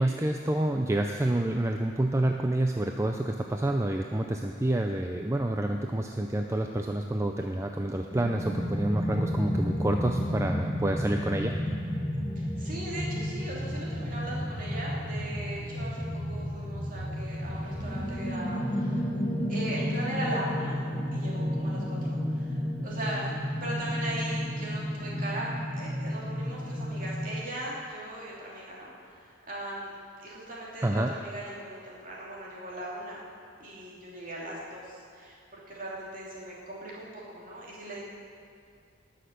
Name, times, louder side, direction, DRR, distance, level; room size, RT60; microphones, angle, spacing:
voice 1, 0.0-11.6 30.8-31.1, right 1 dB, 15° right, 3 dB, 0.4 m, -28 dB
sound 1, 8.1-27.3, equal, 25° left, 1.6 m, -32 dB
voice 2, 12.3-19.1 19.5-20.8 21.1-23.3 23.6-33.2 33.6-38.0, right 1 dB, 45° right, -5 dB, 2.9 m, -39 dB
19.0 x 6.5 x 6.7 m, 2.3 s
head